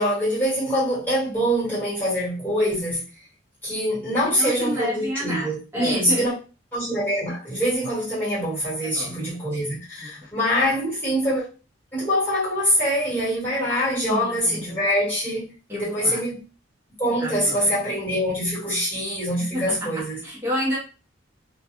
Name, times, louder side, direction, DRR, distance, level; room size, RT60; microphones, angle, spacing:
voice 1, 0.0-3.0 3.6-6.3 6.7-11.4 11.9-16.4 17.0-20.2, equal, 10° left, 1.3 m, -24 dB
voice 2, 4.4-6.2 8.8-9.6 10.0-10.1 14.0-14.8 15.7-16.2 17.2-17.6 19.5-20.8, left 1 dB, 15° right, 0.8 m, -30 dB
2.3 x 2.2 x 2.9 m
head